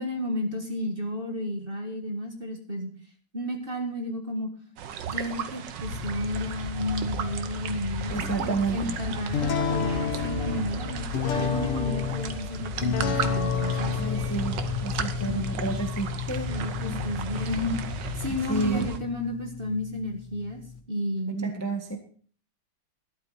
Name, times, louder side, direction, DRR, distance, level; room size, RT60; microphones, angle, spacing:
voice 1, 0.0-2.9 3.3-4.5 5.1-11.0 11.4-14.0 15.3-15.5 16.5-17.8 18.2-20.6 20.9-21.3, left 1 dB, 25° right, 3 dB, 1.7 m, -32 dB
sound 1, 4.8-19.0, right 8 dB, 65° right, 1.5 m, -37 dB
sound 2, 5.8-19.0, left 3 dB, 50° left, 5.7 m, -36 dB
voice 2, 8.1-9.0 14.0-16.5 16.8-17.0 18.5-18.9 21.3-22.0, right 3 dB, 10° left, 3 dB, 1.1 m, -30 dB
sound 3, 9.3-20.8, left 6 dB, 90° left, 2.1 m, -32 dB
13.0 x 11.5 x 4.2 m, 0.43 s
omnidirectional pair, 2.4 m